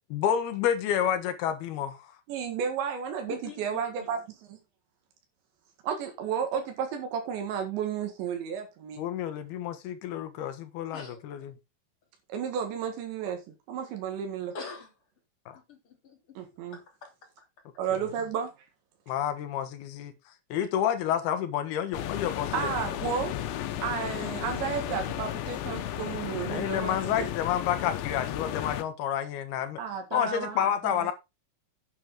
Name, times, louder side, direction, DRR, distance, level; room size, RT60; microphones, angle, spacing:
voice 1, 0.1-2.1 9.0-11.5 19.1-20.1 20.5-22.7 26.5-29.8 30.1-31.1, left 9 dB, 70° left, 3.1 m, -29 dB
voice 2, 2.3-4.2 4.5-4.6 5.8-9.0 12.3-14.5 16.4-16.8 17.8-18.5 22.5-23.4 23.8-27.3 29.8-31.1, right 7 dB, 85° right, 4.1 m, -32 dB
voice 3, 3.2-4.2 10.9-11.2 14.5-14.9 15.5-16.4 16.7-17.1 17.4-17.5, left 4 dB, 35° left, 3.5 m, -45 dB
sound 1, 21.9-28.8, left 11 dB, 85° left, 3.4 m, -34 dB
9.9 x 8.9 x 3.7 m
omnidirectional pair, 5.0 m